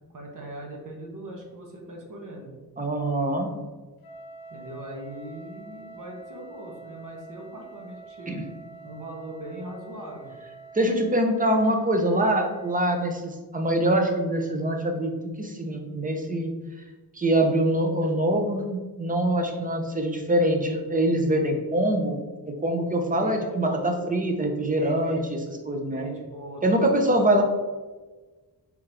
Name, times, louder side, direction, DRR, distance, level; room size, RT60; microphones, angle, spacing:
voice 1, 0.1-2.5 4.5-8.4 8.8-10.3 23.1-24.1 24.7-25.6 25.9-27.2, right 1 dB, 55° right, 0 dB, 1.2 m, -40 dB
voice 2, 2.8-3.5 8.3-8.4 10.7-15.1 15.4-16.5 17.1-22.2 22.5-26.1 26.6-27.4, right 1 dB, 20° right, 3 dB, 0.6 m, -24 dB
Wind instrument woodwind instrument, 4.0-12.9, right 4 dB, 65° left, 0.7 m, -46 dB
3.7 x 3.0 x 4.6 m, 1.3 s
wide cardioid pair, 140°, 39 cm